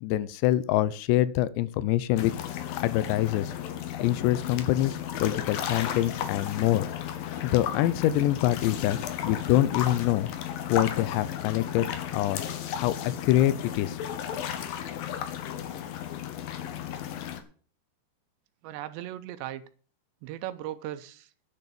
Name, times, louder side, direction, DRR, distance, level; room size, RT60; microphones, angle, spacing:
voice 1, 0.0-2.3 2.8-3.5 4.0-6.9 7.4-10.3 10.7-11.9 12.1-12.4 12.7-12.9 13.2-14.0, left 14 dB, 85° left, 2.9 m, -25 dB
sound 1, 2.2-17.4, left 10 dB, 70° left, 2.5 m, -34 dB
voice 2, 18.6-19.6 20.2-21.3, right 13 dB, 85° right, 3.0 m, -37 dB
10.0 x 6.8 x 8.5 m
omnidirectional pair, 5.0 m